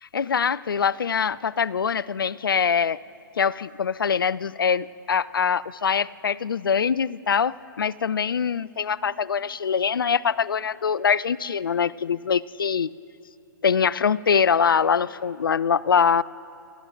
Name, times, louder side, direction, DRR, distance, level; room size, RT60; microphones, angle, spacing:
voice 1, 0.1-3.0 3.4-12.9 13.6-16.2, left 6 dB, 80° left, 21 dB, 0.4 m, -23 dB
27.5 x 13.0 x 3.8 m, 2.7 s
figure-of-eight pair, 120°, 11 cm